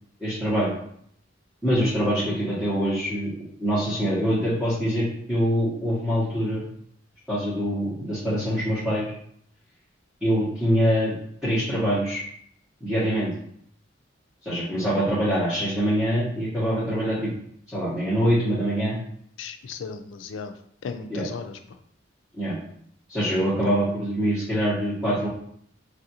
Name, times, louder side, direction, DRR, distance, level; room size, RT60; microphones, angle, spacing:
voice 1, 0.2-0.7 1.6-3.3 3.6-6.7 7.3-9.1 10.2-11.1 11.4-12.2 12.8-13.3 14.4-17.3 17.7-19.0 21.1-21.3 22.3-22.6 23.1-25.3, equal, 5° right, -11 dB, 1.0 m, -24 dB
voice 2, 19.4-20.5 20.8-21.6 23.6-23.7, left 5 dB, 80° left, 8 dB, 0.4 m, -36 dB
3.3 x 2.4 x 2.8 m, 0.66 s
head